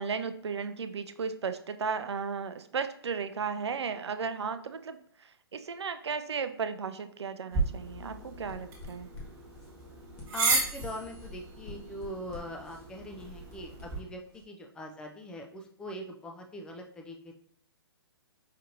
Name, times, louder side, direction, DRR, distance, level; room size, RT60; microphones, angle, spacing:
voice 1, 0.0-9.1, right 5 dB, 85° right, 10 dB, 0.4 m, -35 dB
sound 1, 7.5-14.0, right 4 dB, 20° right, 1.2 m, -34 dB
sound 2, 7.8-14.4, left 3 dB, 25° left, 1.2 m, -48 dB
voice 2, 10.3-17.3, equal, 5° left, 2 dB, 0.3 m, -42 dB
5.2 x 2.7 x 2.6 m, 0.62 s
hypercardioid pair, 135°, 14 cm